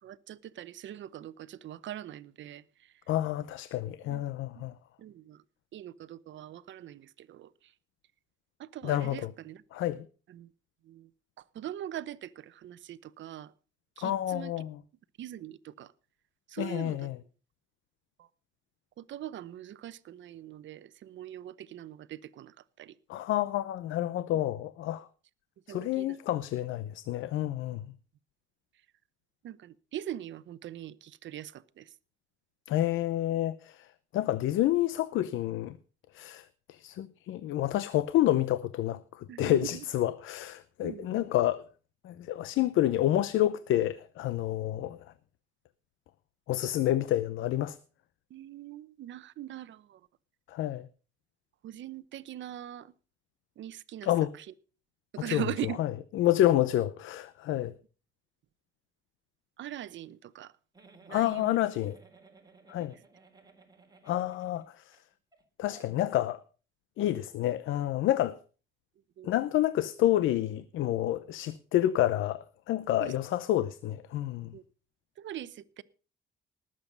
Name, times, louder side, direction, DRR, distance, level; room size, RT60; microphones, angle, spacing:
voice 1, 0.0-3.0 4.1-4.2 4.6-4.7 5.0-5.4 5.7-7.7 8.6-9.6 10.3-10.5 10.8-11.1 11.4-13.5 14.0-14.7 15.2-15.9 16.5-17.1 18.2-18.3 19.0-23.0 25.7-26.2 29.4-32.0 39.3-39.9 40.8-41.3 48.3-50.1 51.6-52.9 53.6-54.5 55.1-55.8 59.6-60.5 61.1-61.6 62.9-63.0 69.2-69.3 73.0-73.2 74.5-74.6 75.2-75.8, right 12 dB, 70° right, 0.9 m, -42 dB
voice 2, 3.1-4.7 8.8-9.3 9.7-10.1 14.0-14.8 16.6-17.2 23.1-25.1 25.7-27.9 32.7-33.9 34.1-35.8 36.1-41.6 42.0-45.1 46.5-47.8 50.5-50.9 54.0-54.3 55.3-55.4 55.8-57.7 61.1-62.0 62.7-62.9 64.0-65.0 65.6-66.4 67.0-68.4 69.2-74.5, left 13 dB, 85° left, 0.7 m, -29 dB
Giggle, 60.7-65.0 65.3-65.4 65.7-65.9, right 4 dB, 20° right, 3.6 m, -57 dB
19.0 x 7.8 x 5.3 m
cardioid pair, 90°, 20 cm